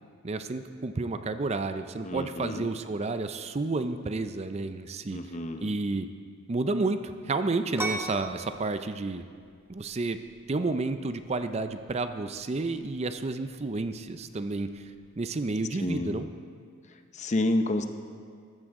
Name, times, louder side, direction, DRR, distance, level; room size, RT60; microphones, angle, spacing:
voice 1, 0.2-5.2 5.6-6.1 6.5-9.2 9.7-10.2 10.5-14.8 15.2-16.3, right 3 dB, 30° right, 9 dB, 0.5 m, -31 dB
voice 2, 2.0-2.7 5.1-5.7 15.8-16.3 17.1-17.9, left 1 dB, 35° left, 7 dB, 0.7 m, -29 dB
sound 1, 7.8-15.1, right 2 dB, 10° right, 0.9 m, -41 dB
14.0 x 13.5 x 3.7 m, 2.1 s
head